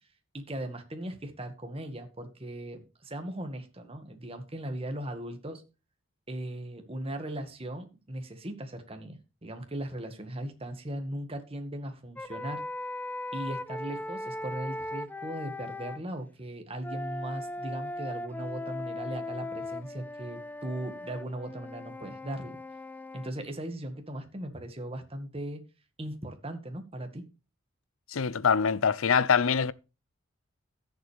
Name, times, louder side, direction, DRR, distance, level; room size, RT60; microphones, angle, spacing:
voice 1, 0.3-5.6 6.3-12.6 13.3-22.6 23.1-25.6 26.0-27.2, right 1 dB, 30° right, 1.8 m, -38 dB
sound 1, 12.2-16.0 16.8-23.3, left 2 dB, 10° left, 0.4 m, -38 dB
voice 2, 28.1-29.7, left 6 dB, 80° left, 0.6 m, -24 dB
15.5 x 7.2 x 3.4 m
head